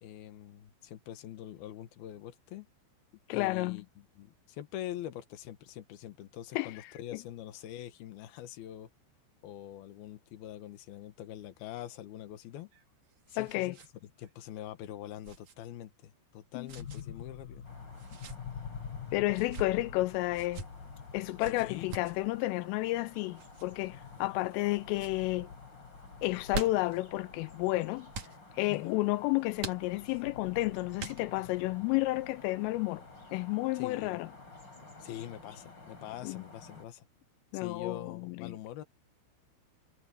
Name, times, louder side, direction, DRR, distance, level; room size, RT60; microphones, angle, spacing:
voice 1, 0.0-2.7 3.3-8.9 9.4-12.7 13.3-13.8 14.2-17.7 21.5-21.9 28.7-29.0 33.7-34.2 35.0-37.1 37.5-38.8, left 12 dB, 65° left, 2.6 m, -44 dB
voice 2, 3.3-3.8 6.5-6.7 7.1-7.2 13.4-13.8 16.5-16.7 19.1-20.6 21.1-25.5 26.2-28.1 28.6-33.0 33.3-34.3 36.2-36.5 37.5-38.6, left 19 dB, 85° left, 3.1 m, -31 dB
sound 1, 12.6-13.9 14.2-14.3 15.2-15.5 16.7-17.0 17.9-18.4 19.3-19.7 20.3-20.7 21.4-22.2 23.4-23.7 24.3-24.7 24.9-25.2 26.2-27.0 28.1-28.4 29.6-30.2 31.0-31.5, right 5 dB, 45° right, 2.5 m, -43 dB
sound 2, 16.8-34.6, left 7 dB, 50° left, 2.5 m, -48 dB
sound 3, 17.6-36.9, left 3 dB, 20° left, 5.1 m, -53 dB
omnidirectional pair, 5.9 m